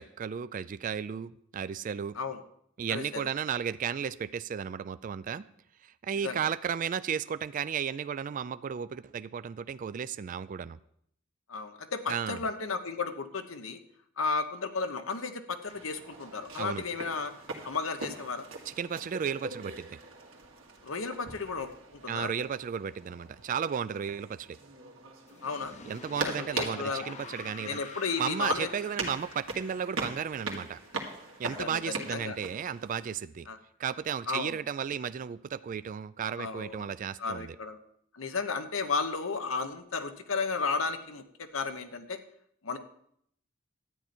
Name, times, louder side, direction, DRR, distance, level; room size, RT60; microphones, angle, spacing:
voice 1, 0.0-2.2 2.8-5.5 5.8-10.8 12.1-12.4 16.6-16.8 18.7-20.0 22.1-24.6 25.9-27.8 28.2-30.8 31.4-33.5 33.8-37.6, right 7 dB, 40° right, 15 dB, 0.3 m, -34 dB
voice 2, 2.9-3.3 6.2-6.4 11.5-13.8 14.2-17.3 17.6-18.4 20.8-22.3 25.4-25.7 26.1-27.1 27.6-28.7 31.4-32.4 33.5-33.6 34.3-34.6 36.4-36.9 37.2-37.8 38.1-42.2 42.6-42.8, left 4 dB, 90° left, 8 dB, 1.1 m, -34 dB
sound 1, 15.7-33.1, right 3 dB, 80° right, 1.9 m, -41 dB
sound 2, 25.3-32.2, left 5 dB, 35° left, 0.7 m, -48 dB
12.5 x 9.4 x 4.4 m, 0.70 s
head